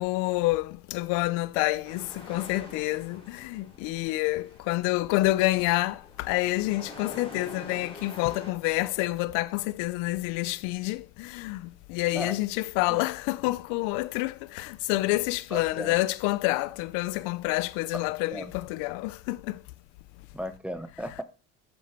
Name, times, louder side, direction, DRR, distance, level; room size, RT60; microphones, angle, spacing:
voice 1, 0.0-11.6 11.9-19.6, left 19 dB, 85° left, 0.5 m, -28 dB
sound 1, 1.8-8.5, left 1 dB, 15° left, 3.8 m, -46 dB
voice 2, 15.5-16.0 18.3-18.5 20.3-21.2, equal, 5° right, 1.0 m, -36 dB
8.0 x 6.7 x 4.4 m
cardioid pair, 120°, 30 cm